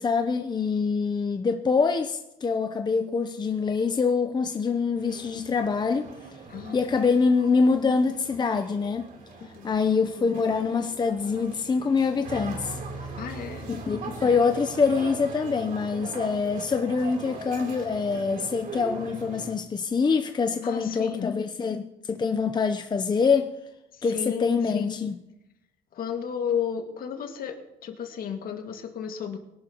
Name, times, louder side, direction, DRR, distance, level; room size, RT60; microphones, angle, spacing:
voice 1, 0.0-6.1 6.7-9.1 9.6-12.8 13.7-23.5 24.0-25.2, left 5 dB, 25° left, 0.8 m, -25 dB
sound 1, 4.9-19.5, right 4 dB, 55° right, 3.5 m, -40 dB
voice 2, 9.4-9.8 13.2-13.7 20.6-21.3 23.9-24.9 25.9-27.6 27.8-29.4, left 7 dB, 60° left, 2.1 m, -33 dB
22.0 x 11.5 x 3.0 m
cardioid pair, 110°, 17 cm